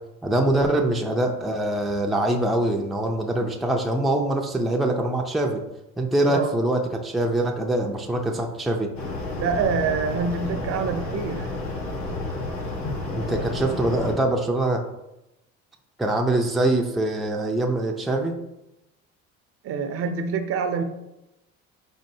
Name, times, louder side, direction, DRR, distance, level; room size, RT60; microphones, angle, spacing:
voice 1, 0.2-5.6 6.0-8.9 13.1-14.8 16.0-18.4, right 1 dB, ahead, 1 dB, 0.4 m, -24 dB
sound 1, 9.0-14.1, left 2 dB, 70° left, 1.2 m, -31 dB
voice 2, 9.4-11.5 19.6-20.8, right 5 dB, 50° right, 7 dB, 0.5 m, -26 dB
4.4 x 4.3 x 2.7 m, 0.91 s
cardioid pair, 105°, 29 cm